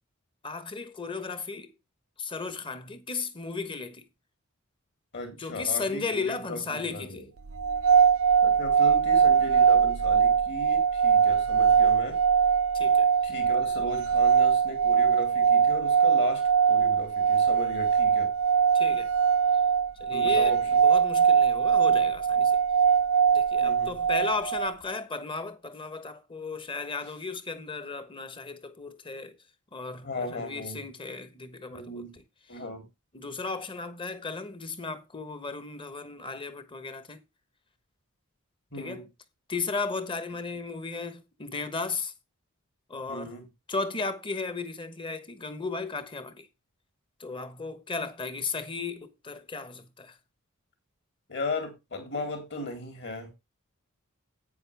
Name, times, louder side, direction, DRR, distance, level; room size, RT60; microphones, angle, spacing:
voice 1, 0.4-1.7 2.2-4.1 5.4-7.2 12.7-13.1 18.7-19.1 20.0-22.6 23.3-29.4 29.7-32.2 32.5-32.6 33.1-37.2 38.7-39.1 39.5-42.1 42.9-43.3 43.7-46.5 47.2-50.2, left 4 dB, 25° left, 1.2 m, -35 dB
voice 2, 5.1-7.3 8.4-12.2 13.2-18.3 20.1-20.8 23.6-24.0 30.0-30.8 31.7-32.1 32.5-32.8 38.7-39.0 43.1-43.4 51.3-53.3, left 2 dB, 55° left, 4.1 m, -36 dB
sound 1, 7.6-24.7, right 7 dB, 65° right, 0.6 m, -22 dB
11.0 x 9.0 x 3.4 m
head